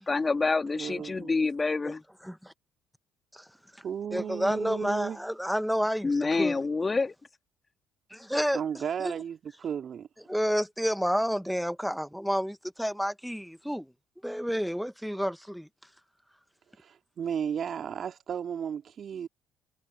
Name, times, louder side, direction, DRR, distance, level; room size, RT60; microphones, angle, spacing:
voice 1, 0.0-2.0 6.0-7.1, left 3 dB, 25° left, 3.1 m, -27 dB
voice 2, 0.7-1.3 3.8-5.2 8.5-10.1 16.8-19.3, right 8 dB, 50° right, 2.8 m, -34 dB
voice 3, 4.1-6.1 6.4-6.6 8.1-8.6 9.0-9.1 10.3-13.9 14.2-15.7, equal, ahead, 1.3 m, -29 dB
hypercardioid pair, 55°, 0 cm